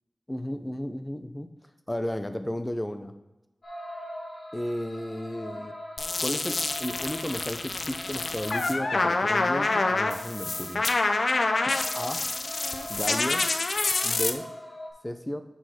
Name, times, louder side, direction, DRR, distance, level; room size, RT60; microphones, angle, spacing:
voice 1, 0.3-1.5 1.9-3.1 4.5-5.7 6.2-10.9 11.7-12.2 12.9-13.5 14.0-14.5 15.0-15.4, left 1 dB, 20° left, 8 dB, 0.8 m, -33 dB
sound 1, 3.6-14.9, equal, 60° left, 2.3 m, -41 dB
sound 2, 6.0-14.3, left 3 dB, 80° left, 0.6 m, -27 dB
7.1 x 6.2 x 4.3 m, 1.0 s
wide cardioid pair, 50°, 0 cm